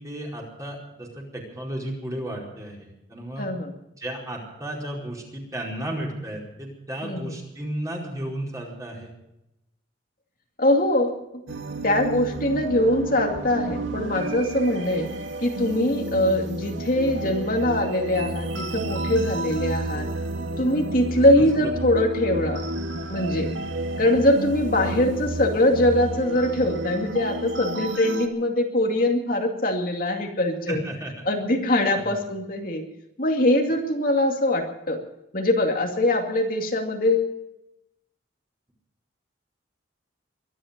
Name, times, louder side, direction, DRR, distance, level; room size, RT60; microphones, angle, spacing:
voice 1, 0.0-3.4 4.0-9.1 21.4-21.5 23.6-23.7 24.8-25.1 30.7-31.3 32.0-32.2, right 1 dB, 20° right, -2 dB, 4.8 m, -34 dB
voice 2, 3.4-3.7 7.0-7.3 10.6-11.1 11.8-15.1 15.4-20.1 20.6-22.6 23.1-23.5 24.0-30.8 31.2-32.8 33.2-35.0 35.3-37.3, left 1 dB, 50° left, 2 dB, 2.3 m, -22 dB
sound 1, 11.5-28.3, right 2 dB, 90° right, 1.8 m, -31 dB
23.5 x 12.0 x 5.3 m, 0.87 s
head